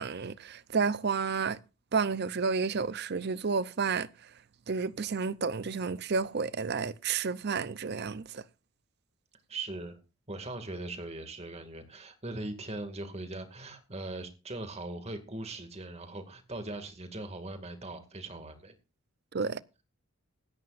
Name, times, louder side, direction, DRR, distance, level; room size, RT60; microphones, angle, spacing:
voice 1, 0.0-1.6 1.9-4.1 4.7-8.4 19.3-19.6, right 5 dB, 50° right, 0.6 m, -31 dB
voice 2, 9.5-10.0 10.3-18.7, right 2 dB, 30° right, 2.2 m, -40 dB
17.0 x 13.5 x 2.5 m
head